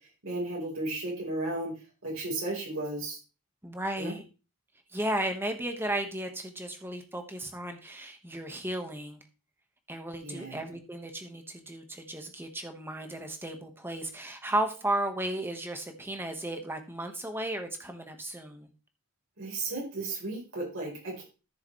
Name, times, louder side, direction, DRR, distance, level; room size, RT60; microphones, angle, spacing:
voice 1, 0.2-1.7 2.0-3.2 4.0-4.2 10.2-10.6 19.4-21.2, right 2 dB, 70° right, -3 dB, 4.2 m, -34 dB
voice 2, 3.6-4.3 4.9-9.2 9.9-18.7, right 1 dB, 10° right, 5 dB, 1.4 m, -34 dB
13.5 x 6.9 x 3.2 m, 0.32 s
head